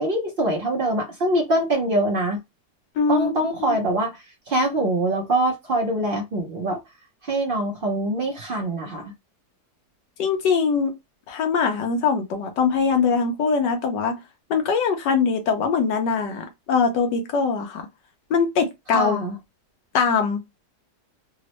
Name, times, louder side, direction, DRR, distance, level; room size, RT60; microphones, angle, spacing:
voice 1, 0.0-2.4 3.1-6.8 7.2-9.1 18.9-19.4, right 1 dB, 85° right, 0.4 m, -24 dB
voice 2, 3.0-3.3 10.2-11.0 11.3-14.1 14.5-17.9 18.3-19.2 19.9-20.4, left 5 dB, 80° left, 1.4 m, -22 dB
3.5 x 2.0 x 2.9 m
omnidirectional pair, 1.8 m